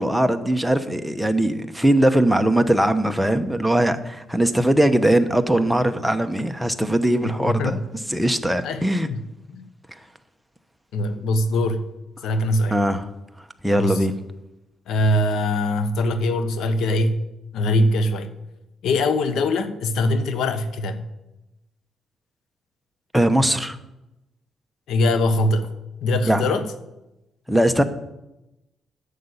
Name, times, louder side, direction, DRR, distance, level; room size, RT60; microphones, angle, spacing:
voice 1, 0.0-7.8 8.1-9.1 12.7-13.1 13.6-14.1 23.1-23.8 26.3-26.4 27.5-27.8, right 1 dB, ahead, 0.9 m, -20 dB
voice 2, 7.4-7.8 8.6-9.2 9.5-9.6 10.9-11.8 12.2-12.7 13.8-14.0 14.9-17.2 17.5-18.3 18.8-21.0 24.9-25.7 26.0-26.7, left 1 dB, 80° left, 1.0 m, -22 dB
9.5 x 6.8 x 8.2 m
cardioid pair, 90°, 0 cm